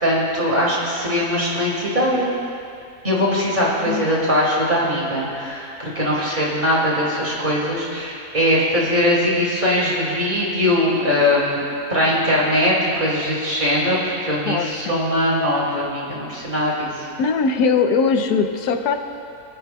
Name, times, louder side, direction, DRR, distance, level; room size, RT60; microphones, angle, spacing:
voice 1, 0.0-2.3 3.0-11.6 11.9-16.9, left 1 dB, 30° right, -5 dB, 2.5 m, -21 dB
voice 2, 14.5-15.0 17.2-19.0, left 5 dB, 85° left, 6 dB, 1.3 m, -20 dB
24.5 x 9.8 x 2.3 m, 2.5 s
omnidirectional pair, 1.6 m